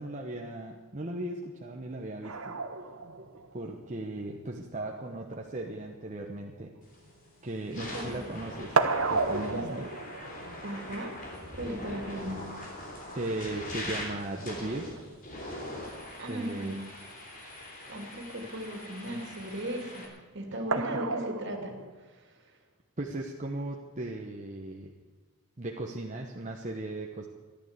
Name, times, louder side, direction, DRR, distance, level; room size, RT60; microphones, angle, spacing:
voice 1, 0.0-2.6 3.2-6.8 7.4-9.9 13.1-14.9 16.3-16.7 20.5-20.6 23.0-24.9 25.6-27.3, right 2 dB, 35° right, 1 dB, 1.0 m, -37 dB
sound 1, 2.2-15.3 16.7-16.8 17.1-17.2 20.7-21.9, right 4 dB, 80° right, 1.2 m, -34 dB
sound 2, 6.9-7.1 7.6-20.1, left 1 dB, 40° left, 3.7 m, -42 dB
voice 2, 7.8-8.2 9.5-9.6 10.6-11.2 11.5-12.4 16.2-16.8 17.5-20.1 20.3-22.6, right 1 dB, 55° right, 3 dB, 2.7 m, -37 dB
14.0 x 12.0 x 8.2 m, 1.3 s
head